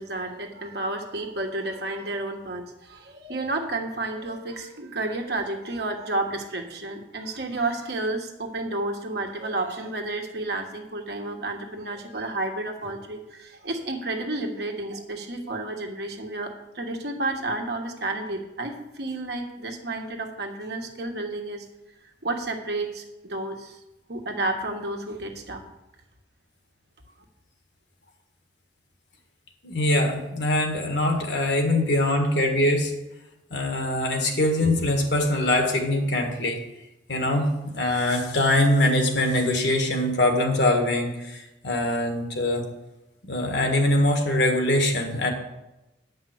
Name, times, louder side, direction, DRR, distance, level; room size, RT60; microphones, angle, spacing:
voice 1, 0.0-21.6 22.2-23.8 24.1-25.6, right 2 dB, 60° right, 2 dB, 1.4 m, -31 dB
voice 2, 29.6-33.0 33.5-36.6 37.1-42.6 43.2-45.3, left 1 dB, 65° left, 3 dB, 1.7 m, -23 dB
9.6 x 5.4 x 7.9 m, 0.98 s
head